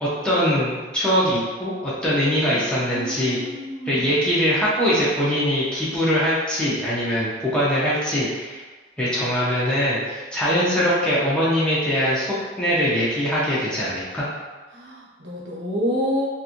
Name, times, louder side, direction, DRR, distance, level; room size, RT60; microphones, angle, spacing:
voice 1, 0.0-3.4 3.9-8.6 9.0-14.2, equal, 5° left, -10 dB, 0.6 m, -22 dB
voice 2, 2.4-4.1 10.5-10.7 14.7-16.3, equal, 75° right, -5 dB, 0.8 m, -29 dB
2.9 x 2.5 x 2.5 m, 1.3 s
head